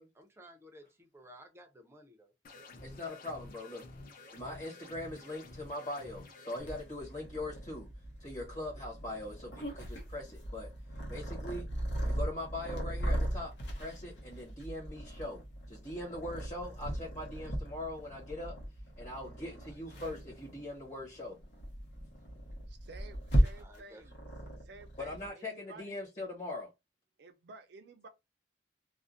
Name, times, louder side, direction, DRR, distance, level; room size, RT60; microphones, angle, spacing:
voice 1, 0.0-2.3 19.6-20.1 23.6-24.0, equal, 15° right, 0.5 m, -56 dB
sound 1, 2.4-6.8, left 2 dB, 55° left, 0.6 m, -51 dB
voice 2, 2.8-3.8 4.3-7.9 8.2-10.7 11.1-11.7 12.0-15.4 15.7-18.6 19.0-21.4 25.0-26.7, left 1 dB, 40° left, 1.1 m, -41 dB
Purr, 6.6-25.3, equal, 90° left, 0.8 m, -37 dB
voice 3, 22.7-24.3 24.6-26.0 27.2-28.1, right 3 dB, 65° right, 0.5 m, -53 dB
2.4 x 2.0 x 2.5 m
head